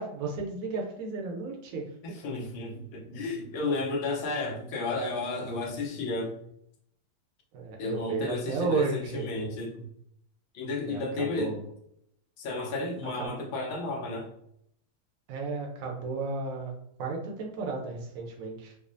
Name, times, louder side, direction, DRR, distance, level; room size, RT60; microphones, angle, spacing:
voice 1, 0.0-1.8 7.5-9.3 10.8-11.6 13.2-13.3 15.3-16.7 17.0-18.7, right 4 dB, 60° right, 0 dB, 0.9 m, -33 dB
voice 2, 2.0-6.3 7.8-9.9 10.5-11.5 12.4-14.3, left 3 dB, 80° left, 0 dB, 1.6 m, -32 dB
5.2 x 2.1 x 2.6 m, 0.72 s
omnidirectional pair, 2.3 m